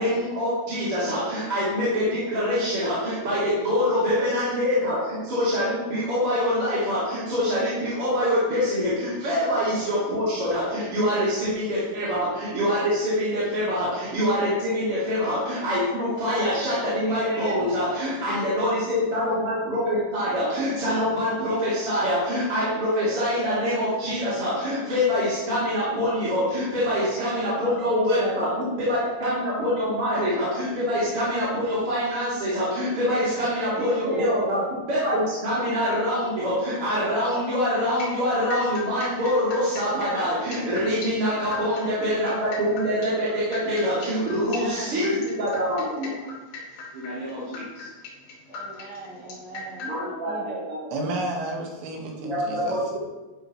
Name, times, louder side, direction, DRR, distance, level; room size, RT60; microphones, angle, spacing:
voice 1, 0.0-46.2 46.9-47.9 49.8-51.0 52.2-52.8, equal, 30° right, -11 dB, 3.5 m, -25 dB
voice 2, 17.0-17.7 27.4-28.5 33.1-34.4 41.2-41.7 44.3-45.1 48.5-50.7, right 2 dB, 55° right, -8 dB, 5.6 m, -38 dB
sound 1, 37.7-49.9, left 4 dB, 65° left, 4.4 m, -39 dB
voice 3, 50.9-53.0, right 2 dB, 80° right, 0 dB, 4.4 m, -31 dB
12.0 x 12.0 x 3.2 m, 1.2 s
omnidirectional pair, 5.7 m